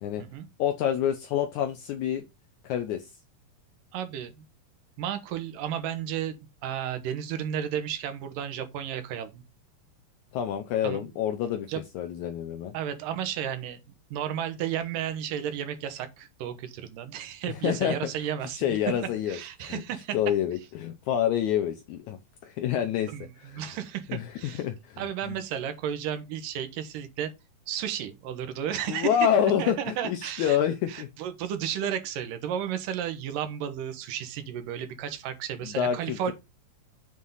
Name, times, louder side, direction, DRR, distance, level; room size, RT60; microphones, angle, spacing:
voice 1, 0.6-2.2 2.6-3.1 10.3-11.7 12.0-12.7 17.5-18.0 18.5-19.8 20.1-23.7 24.1-25.4 28.9-31.1 35.6-36.3, left 9 dB, 90° left, 1.7 m, -28 dB
voice 2, 3.9-4.4 5.0-6.4 6.6-9.4 10.8-11.0 11.7-11.8 12.7-18.8 19.3-20.2 23.1-24.6 25.0-27.3 27.7-29.2 29.6-30.6 30.9-36.3, right 9 dB, 75° right, 2.6 m, -33 dB
7.9 x 3.6 x 5.4 m
omnidirectional pair, 4.1 m